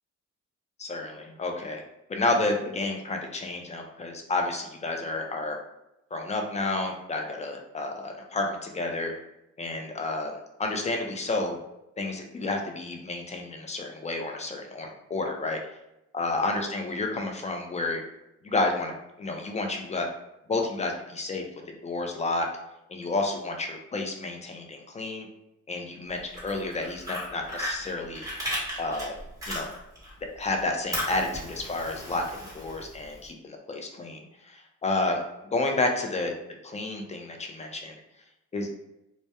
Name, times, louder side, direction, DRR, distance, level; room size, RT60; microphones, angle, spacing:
voice 1, 0.8-1.8 2.1-5.6 6.1-9.1 9.6-10.3 10.6-11.6 12.0-15.6 16.1-18.0 18.4-20.1 20.5-21.4 21.8-22.5 22.9-25.3 25.7-28.2 28.8-29.1 29.5-29.7 30.4-32.2 32.5-35.2 35.5-36.3 36.6-37.9 38.5-38.7, left 2 dB, 25° left, 2 dB, 0.4 m, -30 dB
Fire, 26.2-30.1 30.4-33.2, equal, 10° right, 0.9 m, -35 dB
2.2 x 2.0 x 2.8 m, 0.86 s
cardioid pair, 90°, 30 cm